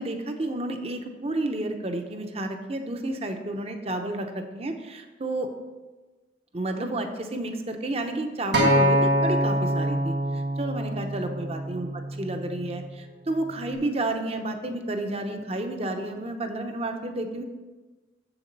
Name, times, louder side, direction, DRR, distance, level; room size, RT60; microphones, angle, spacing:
voice 1, 0.0-5.5 6.5-11.9 12.2-17.4, right 2 dB, 35° right, 6 dB, 0.8 m, -31 dB
Acoustic guitar, 8.5-12.8 13.6-13.7, equal, 70° right, 1.5 m, -25 dB
7.5 x 7.1 x 5.3 m, 1.2 s
head